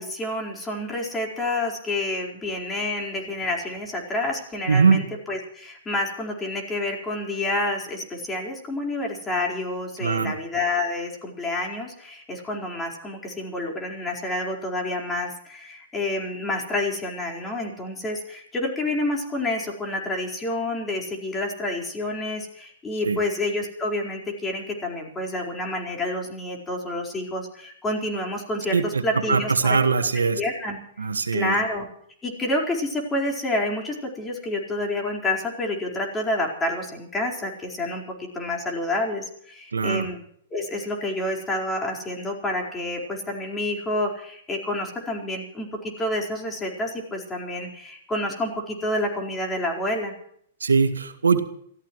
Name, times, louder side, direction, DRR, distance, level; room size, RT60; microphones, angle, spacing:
voice 1, 0.0-29.8 30.4-30.8 31.3-31.9 32.2-40.2 40.5-50.1, left 1 dB, 15° left, 0 dB, 4.7 m, -28 dB
voice 2, 4.7-5.0 10.0-10.4 23.0-23.2 28.7-29.0 29.3-30.4 31.0-31.5 39.7-40.1 50.6-51.4, right 5 dB, 90° right, 8 dB, 1.6 m, -21 dB
29.0 x 14.5 x 3.2 m, 0.63 s
hypercardioid pair, 115°, 0 cm